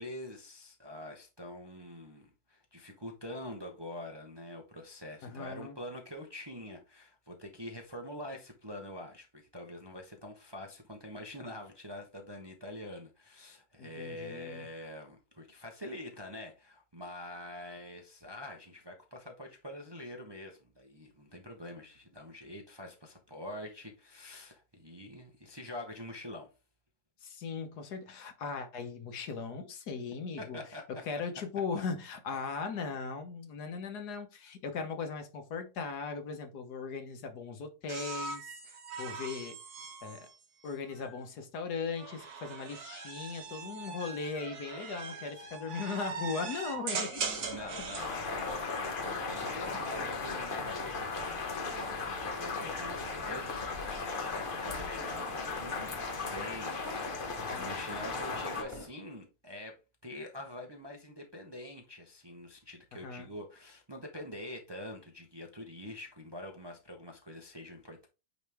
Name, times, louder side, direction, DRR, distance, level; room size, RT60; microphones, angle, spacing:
voice 1, 0.0-26.5 30.4-31.0 47.5-68.1, left 1 dB, 25° right, 0.7 m, -45 dB
voice 2, 5.2-5.8 13.8-14.7 27.2-30.6 31.0-39.6 40.0-40.3 40.6-47.2 57.4-57.7 63.0-63.3, left 5 dB, 80° left, 1.6 m, -38 dB
sound 1, 37.9-41.2 42.0-48.2 49.6-50.2, right 5 dB, 70° right, 1.6 m, -41 dB
sound 2, 47.2-58.9, left 1 dB, 10° left, 1.7 m, -47 dB
sound 3, 48.0-58.6, left 4 dB, 40° left, 0.9 m, -37 dB
8.8 x 3.1 x 3.4 m
omnidirectional pair, 1.7 m